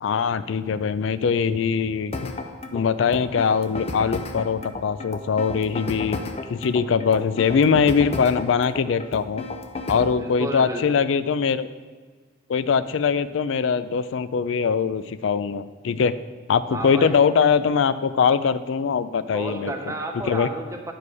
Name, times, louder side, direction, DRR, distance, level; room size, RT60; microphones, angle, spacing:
voice 1, 0.0-2.3 2.7-6.2 6.5-9.4 9.9-11.7 12.5-16.1 16.5-19.7 20.3-20.5, left 6 dB, 75° left, 14 dB, 0.4 m, -22 dB
sound 1, 2.1-10.2, left 2 dB, 30° left, 0.6 m, -32 dB
voice 2, 10.2-11.0 16.7-17.2 19.3-20.9, right 1 dB, 15° right, 3 dB, 0.7 m, -31 dB
9.8 x 4.8 x 4.8 m, 1.5 s
head